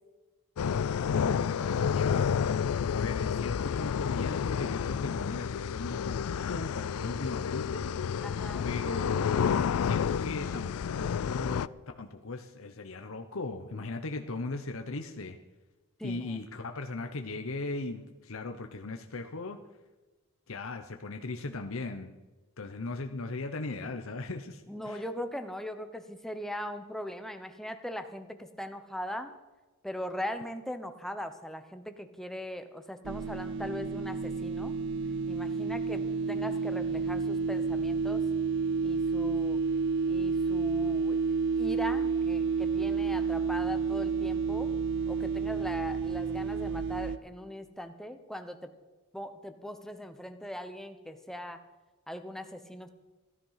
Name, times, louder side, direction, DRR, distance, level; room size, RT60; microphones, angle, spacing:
sound 1, 0.6-11.7, left 7 dB, 90° left, 0.4 m, -30 dB
voice 1, 1.1-2.3 2.9-7.9 8.6-9.3 9.8-15.4 16.0-19.6 20.5-22.2 22.6-25.0, left 3 dB, 70° left, 5 dB, 0.9 m, -38 dB
voice 2, 8.2-8.7 16.0-16.4 24.7-29.3 29.8-34.8 35.3-38.2 38.8-39.6 40.1-41.2 41.6-44.7 45.1-48.7 49.1-51.6 52.1-52.9, equal, ahead, 7 dB, 1.0 m, -40 dB
sound 2, 33.0-47.2, right 5 dB, 55° right, 0.7 m, -30 dB
15.0 x 13.5 x 5.8 m, 1.2 s
head